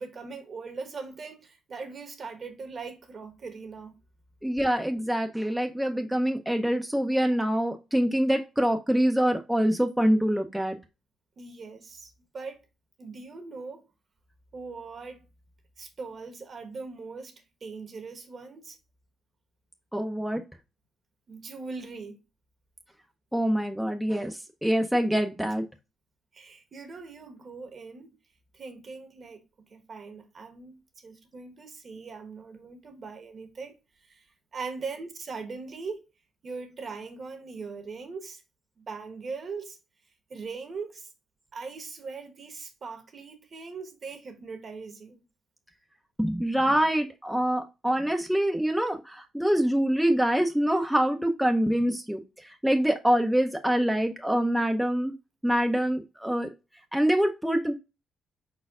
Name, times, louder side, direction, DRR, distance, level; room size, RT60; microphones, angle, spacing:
voice 1, 0.0-4.0 11.4-12.6 13.0-13.8 14.5-15.2 15.8-18.8 21.3-22.2 26.3-28.2 28.5-33.7 34.0-36.0 36.4-38.4 38.8-39.8 40.3-41.1 41.5-45.2, right 4 dB, 45° right, 1.1 m, -40 dB
voice 2, 4.4-10.7 19.9-20.4 23.3-24.3 24.6-25.6 46.2-52.2 52.6-55.1 55.4-56.5 56.9-57.7, equal, ahead, 0.6 m, -25 dB
4.5 x 4.2 x 2.4 m
cardioid pair, 90°, 0 cm